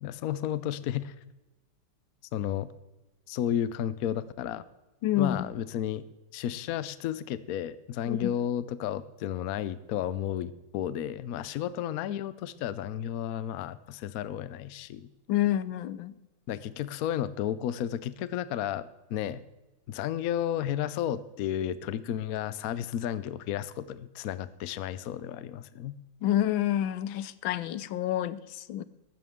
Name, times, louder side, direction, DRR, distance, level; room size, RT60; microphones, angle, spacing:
voice 1, 0.0-1.1 2.3-2.7 3.3-4.6 5.2-6.1 6.3-15.1 16.5-19.4 19.9-25.9, left 10 dB, 65° left, 0.9 m, -32 dB
voice 2, 5.0-5.5 8.1-8.3 15.3-16.1 26.2-28.8, left 12 dB, 85° left, 1.4 m, -28 dB
14.5 x 12.5 x 3.6 m
omnidirectional pair, 2.1 m